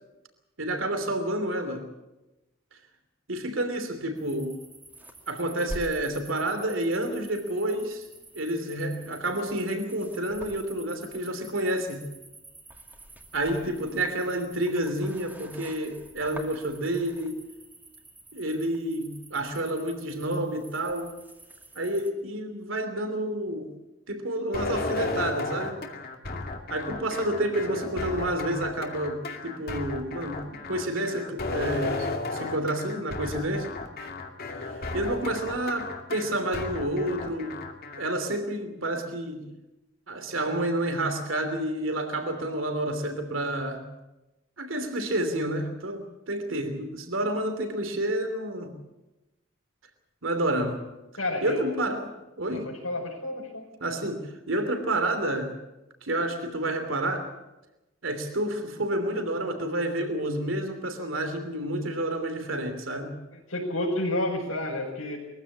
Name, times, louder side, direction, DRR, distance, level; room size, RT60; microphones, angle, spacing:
voice 1, 0.6-1.9 3.3-4.6 5.3-8.0 8.3-12.0 13.3-17.4 18.3-21.1 21.7-23.7 24.1-25.8 26.7-33.7 34.6-37.6 38.0-39.5 40.1-43.8 44.6-48.8 50.2-50.8 51.4-52.1 52.4-52.7 53.8-55.5 56.0-57.3 58.0-63.2, right 1 dB, 75° right, 7 dB, 3.0 m, -29 dB
sound 1, 4.2-22.1, right 1 dB, 10° right, 2.3 m, -47 dB
sound 2, 24.5-38.1, left 3 dB, 50° left, 2.4 m, -34 dB
voice 2, 51.2-51.7 52.5-53.7 63.5-65.2, left 1 dB, 90° left, -5 dB, 5.2 m, -30 dB
22.5 x 15.0 x 8.4 m, 1.0 s
head